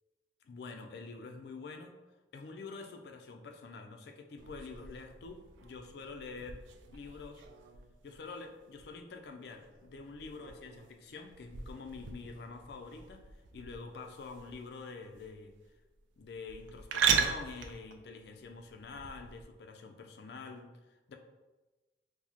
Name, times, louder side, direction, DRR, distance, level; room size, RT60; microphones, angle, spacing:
voice 1, 0.4-2.0 2.3-6.6 6.9-7.4 8.0-15.5 16.2-21.2, left 4 dB, 60° left, 4 dB, 0.4 m, -47 dB
sound 1, 4.4-19.4, right 7 dB, 85° right, 0.3 m, -39 dB
4.5 x 2.1 x 2.8 m, 1.2 s
head